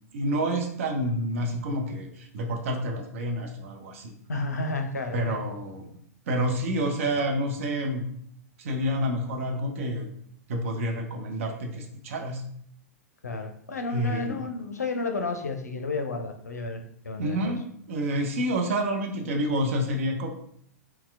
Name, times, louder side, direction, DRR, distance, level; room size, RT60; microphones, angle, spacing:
voice 1, 0.1-4.1 5.1-5.9 6.3-8.1 8.6-10.1 10.5-12.4 13.9-14.5 17.2-20.3, equal, 55° right, 2 dB, 0.6 m, -28 dB
voice 2, 4.3-5.4 13.2-17.5, left 3 dB, 75° left, 5 dB, 0.5 m, -32 dB
4.1 x 2.1 x 2.3 m, 0.67 s
figure-of-eight pair, 100°, 9 cm